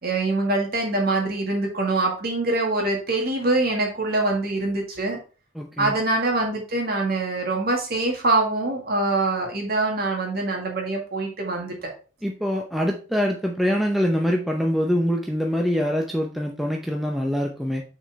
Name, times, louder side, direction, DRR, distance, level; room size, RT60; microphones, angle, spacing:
voice 1, 0.0-5.2 5.8-11.9, right 2 dB, 45° right, 1 dB, 1.7 m, -24 dB
voice 2, 5.6-5.9 12.2-17.8, equal, ahead, 1 dB, 0.6 m, -24 dB
6.1 x 4.3 x 4.6 m, 0.36 s
head